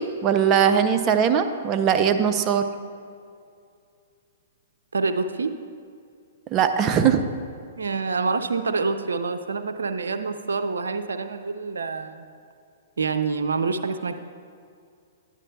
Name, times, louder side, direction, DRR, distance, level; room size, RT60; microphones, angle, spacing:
voice 1, 0.0-2.7 6.5-7.2, right 8 dB, 30° right, 7 dB, 0.5 m, -20 dB
voice 2, 4.9-5.5 7.8-12.3 13.0-14.1, right 4 dB, 85° right, 8 dB, 0.4 m, -26 dB
10.5 x 9.7 x 2.3 m, 2.3 s
hypercardioid pair, 130°, 0 cm